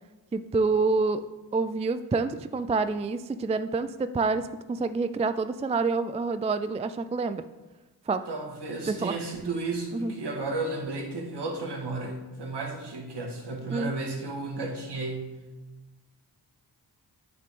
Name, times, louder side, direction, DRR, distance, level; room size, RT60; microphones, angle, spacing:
voice 1, 0.3-1.2 1.5-7.4 8.1-8.3 8.9-9.2 9.9-10.1 13.7-13.9, right 4 dB, 15° right, 11 dB, 0.3 m, -27 dB
voice 2, 8.3-15.3, right 3 dB, 65° right, 0 dB, 1.9 m, -33 dB
8.6 x 6.5 x 3.7 m, 1.1 s
cardioid pair, 55°, 44 cm